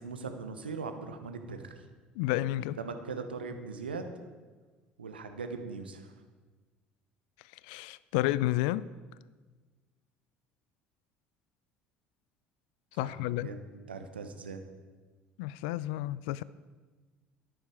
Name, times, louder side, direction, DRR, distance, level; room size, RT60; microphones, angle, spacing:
voice 1, 0.0-1.8 2.8-4.1 5.0-6.1 13.0-13.6 13.9-14.6, right 4 dB, 80° right, 1.0 m, -40 dB
voice 2, 2.2-2.8 7.6-8.9 13.0-13.5 15.4-16.4, left 16 dB, 65° left, 0.4 m, -31 dB
13.0 x 10.5 x 4.9 m
figure-of-eight pair, 60°, 5 cm